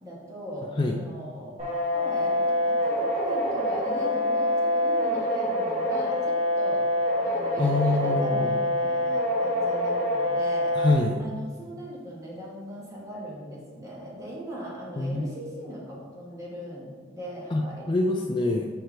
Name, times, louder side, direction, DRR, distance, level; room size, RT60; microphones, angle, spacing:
voice 1, 0.0-1.5 1.9-10.7 11.2-17.9, equal, 20° right, -5 dB, 1.3 m, -39 dB
sound 1, 1.6-10.9, left 1 dB, 35° right, 1.6 m, -25 dB
voice 2, 7.6-8.5 10.7-11.2 15.0-15.3 17.5-18.7, left 2 dB, 25° left, 1 dB, 0.3 m, -25 dB
4.9 x 4.5 x 4.5 m, 1.5 s
head